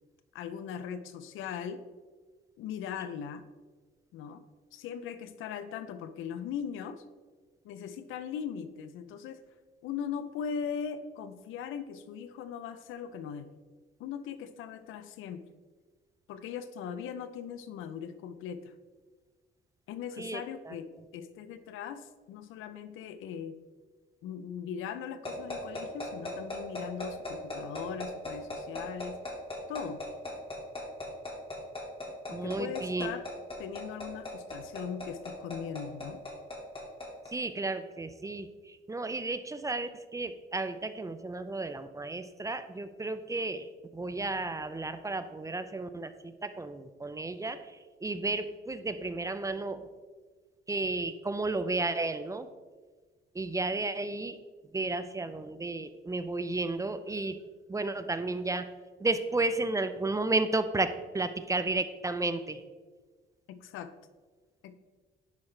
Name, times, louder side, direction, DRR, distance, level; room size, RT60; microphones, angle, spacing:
voice 1, 0.3-1.8 2.6-3.4 4.1-4.4 4.7-7.0 7.6-9.4 9.8-13.5 14.0-15.4 16.3-18.7 19.9-20.9 21.1-23.6 24.2-29.2 29.7-30.0 32.3-33.3 33.6-36.2 63.5-63.9 64.6-64.7, left 7 dB, 90° left, 11 dB, 0.6 m, -39 dB
sound 1, 25.2-37.3, left 3 dB, 25° left, 2.0 m, -37 dB
voice 2, 32.3-33.1 37.3-38.5 38.9-43.7 43.9-47.6 48.0-49.8 50.7-52.5 53.4-54.4 54.7-57.4 57.7-58.7 59.0-60.9 61.1-62.6, right 2 dB, 15° right, 11 dB, 0.5 m, -32 dB
10.5 x 4.9 x 3.2 m, 1.4 s
cardioid pair, 90°, 20 cm